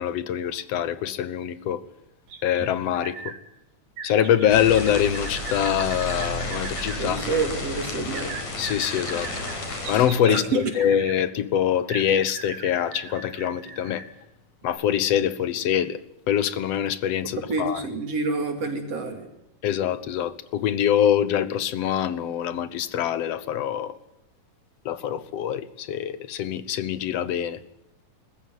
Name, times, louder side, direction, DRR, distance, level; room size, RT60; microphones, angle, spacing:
voice 1, 0.0-1.8 2.4-3.3 4.0-7.2 8.6-9.3 9.9-14.0 14.6-16.0 16.3-17.8 19.6-23.9 24.9-27.6, left 10 dB, 65° left, 1.9 m, -24 dB
sound 1, 2.3-3.4 4.0-7.0 8.1-11.2 11.9-14.1 14.6-14.7, right 5 dB, 80° right, 4.7 m, -39 dB
sound 2, 4.5-10.1, left 2 dB, 85° left, 6.2 m, -32 dB
voice 2, 7.0-8.4 10.3-10.6 17.5-19.3, right 4 dB, 55° right, 3.6 m, -28 dB
21.0 x 15.5 x 9.3 m
omnidirectional pair, 3.5 m